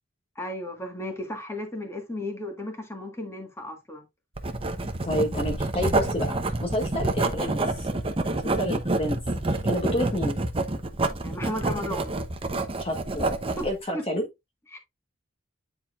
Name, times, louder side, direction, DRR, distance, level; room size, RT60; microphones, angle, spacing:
voice 1, 0.3-4.0 11.2-12.1 13.6-13.7 13.9-14.0 14.7-14.8, left 1 dB, 15° left, 1.7 m, -34 dB
Writing, 4.4-13.7, right 2 dB, 30° right, 0.8 m, -28 dB
voice 2, 5.0-6.3 6.6-7.9 8.3-9.2 9.5-10.4 12.8-13.4 13.6-14.3, left 1 dB, 30° left, 1.4 m, -29 dB
9.7 x 4.3 x 2.5 m
head